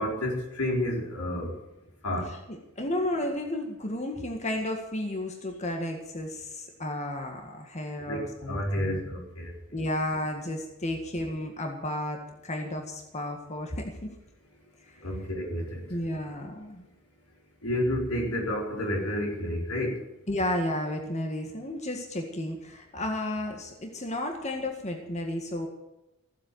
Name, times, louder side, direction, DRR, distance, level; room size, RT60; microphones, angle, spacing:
voice 1, 0.0-1.6 2.0-2.4 8.0-9.5 15.0-15.9 17.6-20.0, left 1 dB, 90° left, 0 dB, 4.5 m, -30 dB
voice 2, 2.5-9.0 9.7-14.1 14.9-15.0 15.9-16.8 20.3-25.7, left 1 dB, 30° left, 3 dB, 1.8 m, -32 dB
16.0 x 7.5 x 9.3 m, 0.91 s
head